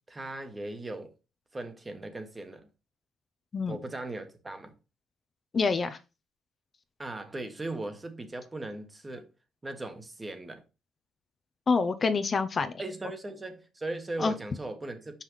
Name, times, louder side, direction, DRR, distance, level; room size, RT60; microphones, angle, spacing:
voice 1, 0.1-1.1 1.5-2.7 3.7-4.7 7.0-9.3 9.6-10.6 12.8-15.2, right 2 dB, 20° right, 1.3 m, -38 dB
voice 2, 5.5-6.0 11.7-12.7 14.2-14.3, left 4 dB, 40° left, 0.6 m, -26 dB
5.7 x 5.3 x 3.1 m
supercardioid pair, 75°, 0 cm